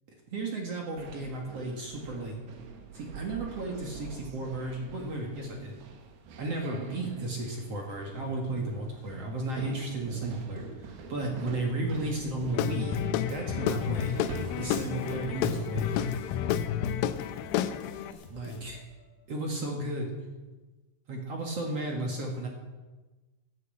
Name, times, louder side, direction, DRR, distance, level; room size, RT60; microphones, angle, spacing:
voice 1, 0.3-2.4 2.9-5.8 6.4-13.0 13.3-14.1 14.6-16.0 18.3-18.8 19.3-20.1 21.1-22.5, right 2 dB, 50° right, 1 dB, 2.4 m, -34 dB
sound 1, 1.0-17.4, right 3 dB, 75° right, 3.4 m, -44 dB
Guitar / Drum, 12.5-18.1, left 10 dB, 80° left, 2.2 m, -30 dB
sound 2, 13.8-19.6, left 4 dB, 60° left, 2.5 m, -50 dB
12.0 x 9.7 x 8.5 m, 1.2 s
omnidirectional pair, 4.5 m